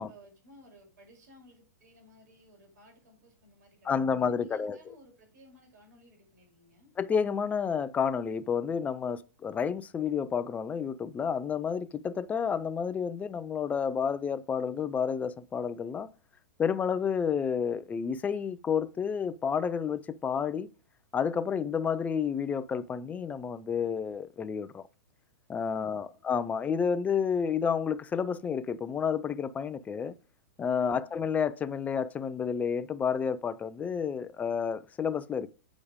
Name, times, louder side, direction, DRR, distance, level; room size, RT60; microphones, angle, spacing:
voice 1, 0.0-6.9 25.8-26.4 31.0-31.3, equal, 70° right, 5.2 m, -58 dB
voice 2, 3.9-4.8 7.0-16.1 16.6-20.7 21.1-24.9 25.5-30.2 30.6-35.5, left 6 dB, 15° left, 0.5 m, -30 dB
8.5 x 5.1 x 4.9 m
hypercardioid pair, 125°, 10 cm